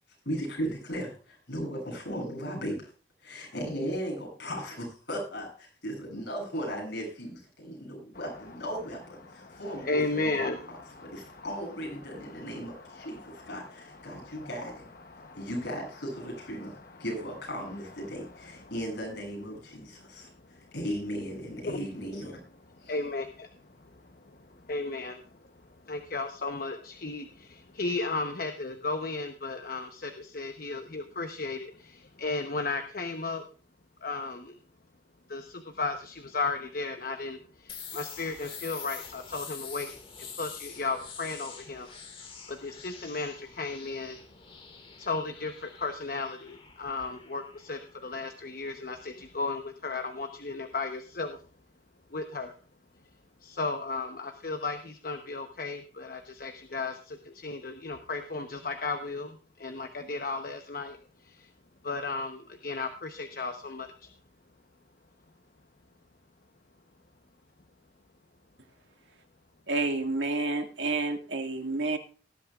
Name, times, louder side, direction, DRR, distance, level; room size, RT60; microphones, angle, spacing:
voice 1, 0.2-2.9 3.2-10.5 11.0-14.9 15.3-22.4 22.8-23.0, equal, 75° left, 0 dB, 7.9 m, -37 dB
voice 2, 9.2-10.6 10.9-11.4 12.1-14.5 15.1-15.5 20.2-20.6 21.7-21.8 22.8-25.5 25.8-33.4 34.0-34.6 35.3-44.2 45.0-51.4 52.1-52.5 53.4-61.0 61.2-61.5 61.8-64.1, left 3 dB, 50° left, 5 dB, 1.0 m, -35 dB
sound 1, 37.7-49.3, left 6 dB, 30° left, 2.0 m, -46 dB
voice 3, 69.7-72.0, right 3 dB, 85° right, 5 dB, 2.0 m, -29 dB
19.0 x 11.0 x 2.4 m, 0.38 s
head